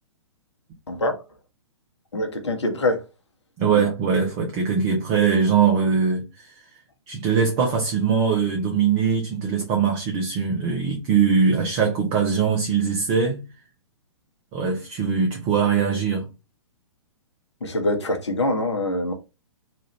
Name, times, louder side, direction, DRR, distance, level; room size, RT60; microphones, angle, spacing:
voice 1, 0.9-1.2 2.1-3.0 3.7-3.9 17.6-19.1, left 1 dB, 65° left, 1.1 m, -24 dB
voice 2, 3.6-6.6 7.1-13.5 14.5-16.3, right 6 dB, 25° right, 0.7 m, -21 dB
3.1 x 2.4 x 3.0 m
figure-of-eight pair, 115°, 16 cm